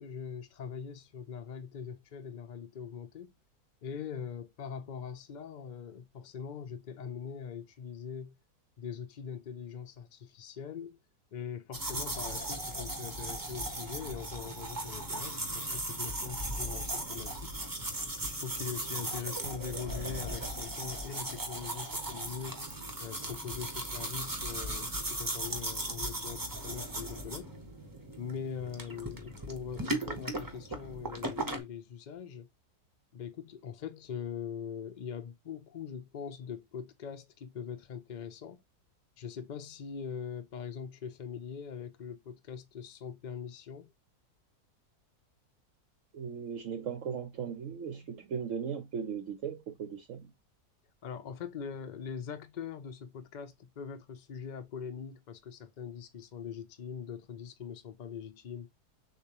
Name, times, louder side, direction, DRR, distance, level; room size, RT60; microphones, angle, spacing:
voice 1, 0.0-3.3 3.8-8.4 8.8-11.0 11.3-17.6 18.1-22.6 23.0-27.5 28.2-32.5 33.1-38.6 39.2-43.9 51.0-58.7, left 7 dB, 80° left, 0.4 m, -42 dB
sound 1, 11.7-31.6, right 1 dB, 20° right, 0.6 m, -37 dB
voice 2, 46.1-50.3, right 7 dB, 65° right, 0.9 m, -37 dB
6.8 x 2.5 x 2.9 m
omnidirectional pair, 1.7 m